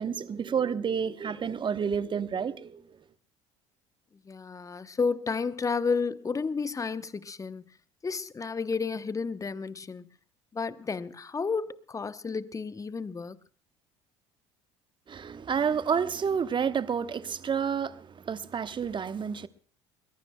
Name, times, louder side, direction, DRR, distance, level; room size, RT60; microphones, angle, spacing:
voice 1, 0.0-2.8 15.1-19.5, right 7 dB, 30° right, 1.0 m, -30 dB
voice 2, 4.2-7.6 8.0-10.0 10.5-13.4, left 5 dB, 20° left, 0.8 m, -31 dB
21.5 x 21.0 x 2.2 m
figure-of-eight pair, 60°, 16 cm